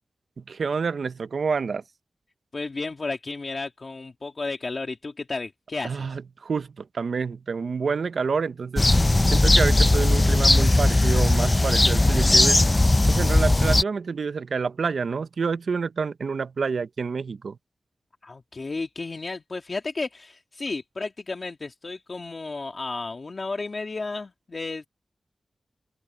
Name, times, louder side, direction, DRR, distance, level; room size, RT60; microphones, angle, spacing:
voice 1, 0.4-1.8 5.8-8.9 9.3-12.6 13.1-17.6, right 5 dB, 80° right, 0.7 m, -28 dB
voice 2, 2.5-6.1 18.2-24.9, left 3 dB, 45° left, 1.7 m, -33 dB
sound 1, 8.8-13.8, left 2 dB, 25° left, 0.5 m, -18 dB
open air
wide cardioid pair, 100°, 0 cm